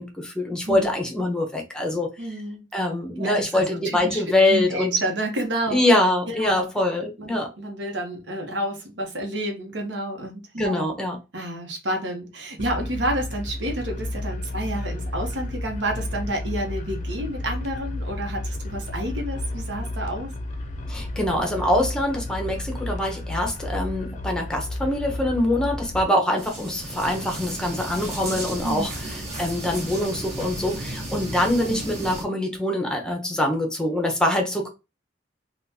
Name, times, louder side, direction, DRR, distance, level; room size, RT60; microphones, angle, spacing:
voice 1, 0.0-2.1 2.7-4.9 5.7-7.5 10.6-11.2 20.9-28.9 29.4-34.7, left 1 dB, 5° left, 0.7 m, -24 dB
voice 2, 0.7-1.0 2.2-2.6 3.2-4.2 4.5-5.8 6.3-6.6 7.2-10.9 11.3-20.3 28.6-29.3 31.6-31.9, right 1 dB, 85° right, 1.0 m, -30 dB
sound 1, 12.6-26.0, left 1 dB, 40° left, 0.5 m, -32 dB
sound 2, 26.4-32.2, right 1 dB, 35° right, 1.2 m, -34 dB
3.6 x 2.4 x 2.7 m
head